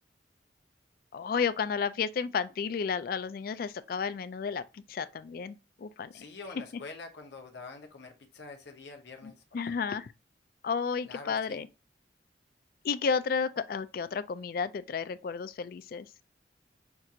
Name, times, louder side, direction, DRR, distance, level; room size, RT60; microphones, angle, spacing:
voice 1, 1.1-6.2 9.2-10.1 10.6-11.7 12.8-16.1, left 6 dB, 50° left, 0.3 m, -32 dB
voice 2, 6.1-9.8 11.0-11.7, left 3 dB, 65° left, 0.8 m, -46 dB
5.9 x 2.4 x 2.7 m
head